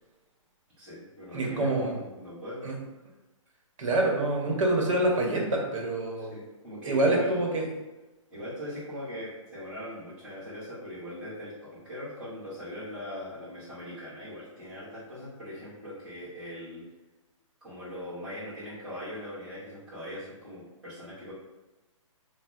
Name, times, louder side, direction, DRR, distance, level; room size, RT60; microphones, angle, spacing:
voice 1, 0.8-2.7 6.2-7.5 8.3-16.9 17.6-21.3, left 1 dB, 5° right, -15 dB, 0.9 m, -40 dB
voice 2, 1.3-1.9 2.6-2.7 3.8-6.3 6.8-7.6, right 2 dB, 70° right, -1 dB, 0.9 m, -26 dB
2.7 x 2.0 x 3.5 m, 1.1 s
hypercardioid pair, 165°, 17 cm